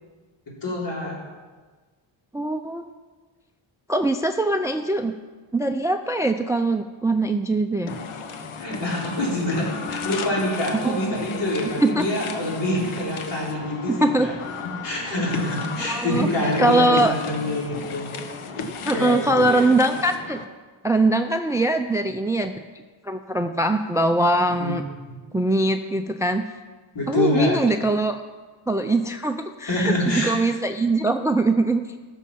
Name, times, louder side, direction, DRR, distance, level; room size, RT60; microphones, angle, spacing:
voice 1, 0.6-1.2 8.6-14.3 14.8-18.1 18.9-19.6 24.6-24.8 26.9-27.6 29.7-30.3, left 1 dB, 60° left, -4 dB, 4.0 m, -26 dB
voice 2, 2.3-2.8 3.9-5.1 5.5-7.9 10.8-11.0 11.8-12.0 13.9-14.3 15.8-16.3 16.6-17.1 18.8-20.4 20.8-22.5 23.0-24.8 25.3-26.4 27.1-28.2 28.7-31.8, right 2 dB, 5° right, 8 dB, 0.4 m, -22 dB
sound 1, 7.9-20.4, left 4 dB, 85° left, 1.1 m, -34 dB
14.5 x 6.5 x 5.8 m, 1.4 s
wide cardioid pair, 120°, 48 cm